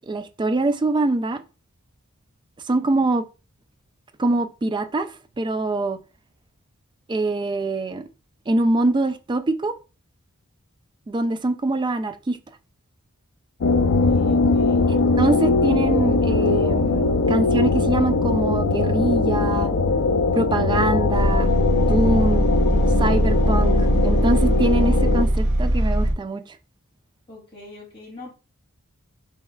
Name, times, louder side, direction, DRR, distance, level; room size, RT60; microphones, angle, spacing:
voice 1, 0.0-1.4 2.7-3.2 4.2-6.0 7.1-8.1 8.5-9.7 11.1-12.4 14.9-19.7 20.3-22.5 23.0-26.4, right 2 dB, 20° right, 0.3 m, -24 dB
sound 1, 13.6-25.3, left 3 dB, 65° left, 0.4 m, -21 dB
voice 2, 13.6-14.9 27.3-28.3, left 1 dB, 25° left, 2.4 m, -42 dB
sound 2, 21.1-26.1, right 1 dB, 75° right, 1.3 m, -20 dB
5.4 x 3.3 x 2.2 m
head